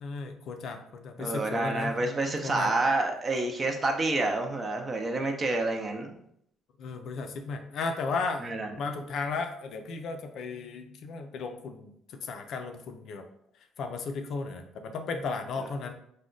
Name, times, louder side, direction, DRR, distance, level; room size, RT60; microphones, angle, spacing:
voice 1, 0.0-2.0 2.4-2.7 6.8-13.3 13.8-15.9, left 4 dB, 55° left, 6 dB, 0.4 m, -35 dB
voice 2, 1.2-6.1 8.4-8.7, right 2 dB, 25° right, 3 dB, 0.6 m, -28 dB
4.8 x 2.2 x 3.8 m, 0.71 s
cardioid pair, 150°, 0 cm